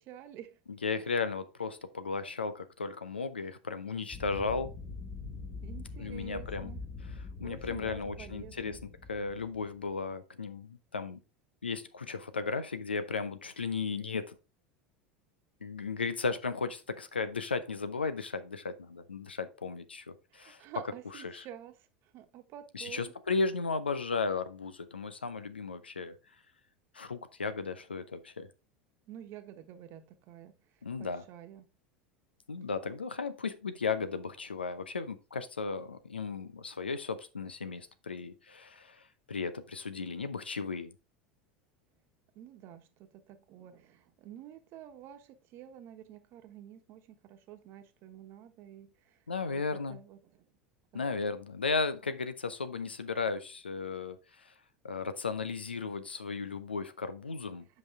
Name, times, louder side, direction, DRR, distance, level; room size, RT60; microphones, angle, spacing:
voice 1, 0.0-0.6 1.0-1.1 5.6-6.8 7.4-8.8 20.3-21.9 22.1-23.1 29.1-30.5 31.0-31.7 42.3-49.2 49.5-50.5 50.9-51.0, right 11 dB, 45° right, 1.2 m, -49 dB
voice 2, 0.7-4.7 6.0-6.7 7.2-8.8 9.1-11.2 11.6-14.4 15.6-20.6 21.1-21.5 22.7-26.2 26.9-28.5 30.8-31.2 32.5-39.0 39.3-40.9 49.3-50.0 50.9-54.5 54.8-57.7, left 4 dB, 85° left, 0.7 m, -35 dB
sound 1, 4.1-9.9, left 4 dB, 25° left, 2.1 m, -43 dB
7.9 x 5.4 x 3.6 m
figure-of-eight pair, 80°, 6 cm